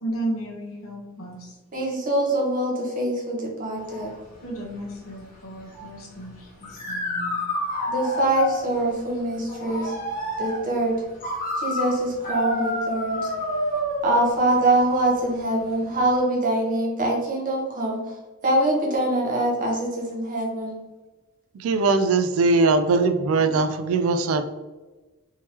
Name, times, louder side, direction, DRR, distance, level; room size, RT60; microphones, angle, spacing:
voice 1, 0.0-1.6 4.4-7.4, right 1 dB, 65° left, -1 dB, 1.0 m, -34 dB
voice 2, 1.7-4.1 7.9-9.9 10.4-11.0 11.6-13.2 14.0-18.0 18.4-20.7, right 1 dB, 35° right, -2 dB, 0.9 m, -24 dB
sound 1, 3.8-16.2, left 1 dB, 40° left, 1.0 m, -30 dB
voice 3, 21.6-24.5, right 3 dB, 65° right, 8 dB, 0.3 m, -20 dB
3.6 x 2.9 x 2.9 m, 1.2 s
head